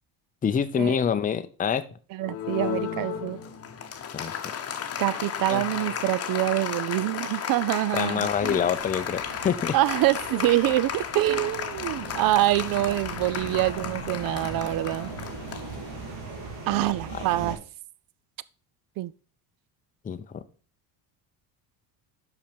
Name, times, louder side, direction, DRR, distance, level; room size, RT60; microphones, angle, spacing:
voice 1, 0.4-1.8 4.1-4.6 5.5-5.6 7.9-9.8 17.1-17.2 20.0-20.4, left 7 dB, 20° left, 0.5 m, -26 dB
voice 2, 2.1-3.4 5.0-8.6 9.7-15.1 16.7-17.6 19.0-19.1, right 16 dB, 55° right, 0.5 m, -25 dB
Applause, 2.2-16.3, left 8 dB, 35° left, 0.9 m, -34 dB
sound 1, 8.2-17.6, right 4 dB, 85° right, 3.0 m, -40 dB
5.8 x 5.5 x 5.2 m
cardioid pair, 110°, 41 cm